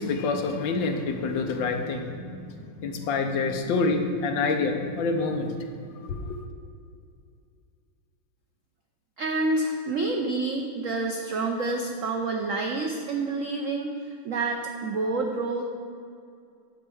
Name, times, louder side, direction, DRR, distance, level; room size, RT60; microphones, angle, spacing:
voice 1, 0.0-5.6 6.1-6.4, left 3 dB, 70° left, 5 dB, 1.4 m, -27 dB
voice 2, 9.2-15.6, right 3 dB, 85° right, 2 dB, 0.7 m, -28 dB
9.6 x 4.6 x 7.6 m, 2.4 s
omnidirectional pair, 2.2 m